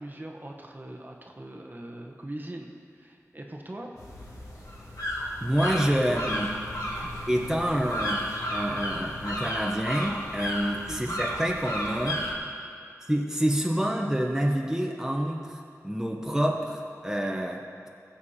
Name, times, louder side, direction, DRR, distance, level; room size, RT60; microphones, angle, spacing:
voice 1, 0.0-3.9 7.0-7.1 10.9-11.3, right 1 dB, 35° right, 1 dB, 1.2 m, -41 dB
sound 1, 4.0-12.3, equal, 75° left, 2.7 m, -33 dB
voice 2, 5.4-6.5 7.3-12.2 13.1-17.9, equal, 10° right, 0 dB, 1.1 m, -28 dB
21.0 x 7.2 x 4.3 m, 2.3 s
wide cardioid pair, 65°, 6 cm